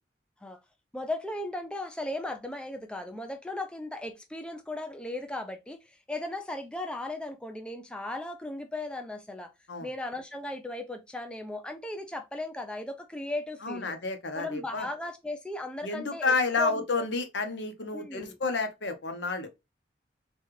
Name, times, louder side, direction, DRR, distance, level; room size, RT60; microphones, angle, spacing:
voice 1, 0.9-9.5 9.8-13.9 14.3-17.1 17.9-18.4, left 2 dB, 5° left, 0.4 m, -36 dB
voice 2, 13.6-14.9 15.8-19.5, left 3 dB, 75° left, 0.9 m, -30 dB
4.2 x 2.3 x 3.1 m
head